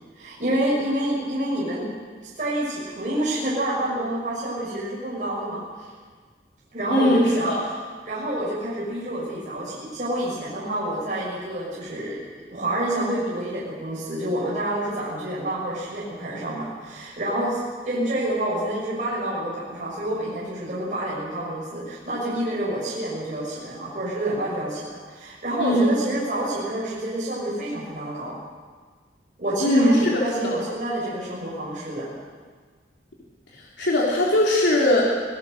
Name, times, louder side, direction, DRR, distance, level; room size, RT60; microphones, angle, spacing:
voice 1, 0.2-1.9 2.2-5.9 6.7-12.2 12.5-28.3 29.4-32.1, right 1 dB, 45° right, -7 dB, 6.2 m, -28 dB
voice 2, 6.9-7.6 25.6-26.0 29.6-30.5 33.8-35.0, left 1 dB, 85° left, -4 dB, 3.5 m, -20 dB
25.5 x 18.0 x 6.6 m, 1.5 s
head